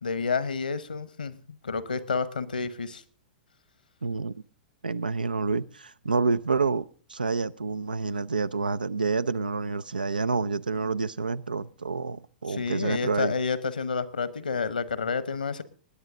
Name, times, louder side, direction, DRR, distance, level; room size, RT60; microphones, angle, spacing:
voice 1, 0.0-3.0 12.5-15.6, left 5 dB, 75° left, 1.1 m, -30 dB
voice 2, 4.0-4.3 4.8-6.8 7.1-13.3, right 4 dB, 80° right, 0.5 m, -28 dB
20.5 x 9.6 x 3.7 m
figure-of-eight pair, 105°, 5 cm